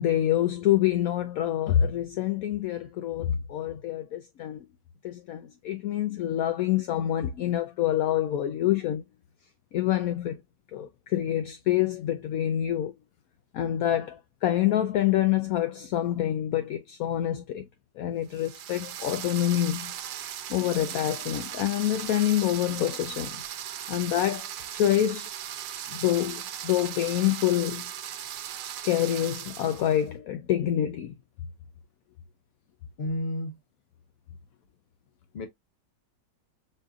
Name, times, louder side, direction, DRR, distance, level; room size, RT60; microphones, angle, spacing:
voice 1, 0.0-4.7 5.0-9.0 9.7-10.4 10.7-12.9 13.5-17.7 18.0-19.9 20.5-23.4 23.9-24.5 24.7-25.3 25.9-27.9 28.8-31.1, left 12 dB, 70° left, 0.8 m, -26 dB
sound 1, 18.3-30.0, right 10 dB, 90° right, 1.4 m, -38 dB
voice 2, 33.0-33.6 35.3-35.5, left 1 dB, 40° left, 1.0 m, -31 dB
6.5 x 2.5 x 2.3 m
omnidirectional pair, 1.9 m